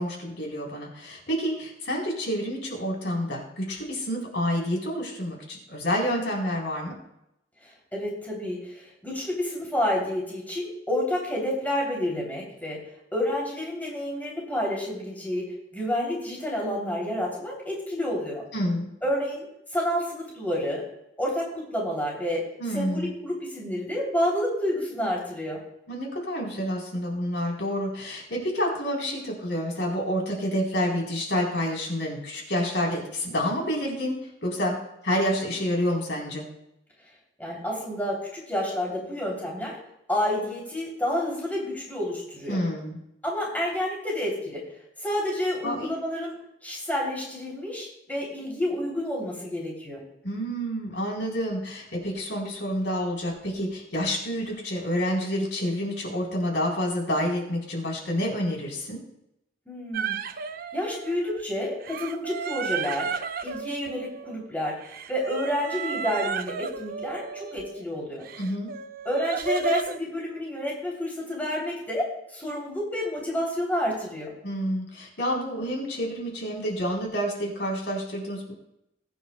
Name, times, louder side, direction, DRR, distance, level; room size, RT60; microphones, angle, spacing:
voice 1, 0.0-6.9 18.5-18.9 22.6-23.1 25.9-34.1 34.4-34.8 35.0-36.5 42.5-43.0 45.6-45.9 50.2-59.0 68.4-68.7 74.4-78.5, equal, 70° left, -1 dB, 4.0 m, -28 dB
voice 2, 7.6-12.8 13.1-18.4 19.0-19.5 19.7-20.8 21.2-22.4 22.7-25.6 37.4-39.8 40.1-42.6 43.2-44.6 45.0-46.3 46.6-50.0 59.7-60.4 60.7-63.2 63.4-68.2 69.0-74.3, left 1 dB, 10° left, -3 dB, 3.1 m, -29 dB
sound 1, 59.9-61.4 61.8-64.5 64.8-67.8 68.2-70.0, right 5 dB, 50° right, 0.5 m, -33 dB
21.0 x 9.4 x 2.3 m, 0.82 s
head